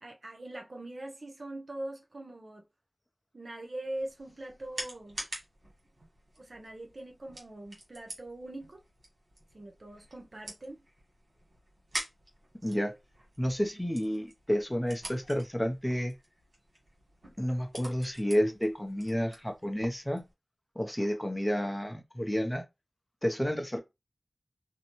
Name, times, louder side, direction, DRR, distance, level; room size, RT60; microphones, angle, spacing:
voice 1, 0.0-2.6 3.3-5.2 6.4-8.8 9.5-10.8 13.7-13.9, right 1 dB, 65° right, 0.7 m, -42 dB
sound 1, 3.9-20.3, right 1 dB, 90° right, 1.2 m, -47 dB
voice 2, 12.6-12.9 13.4-16.1 17.4-20.2 20.8-22.6 23.2-23.8, equal, 15° left, 0.6 m, -30 dB
2.6 x 2.2 x 2.9 m
wide cardioid pair, 55°, 0 cm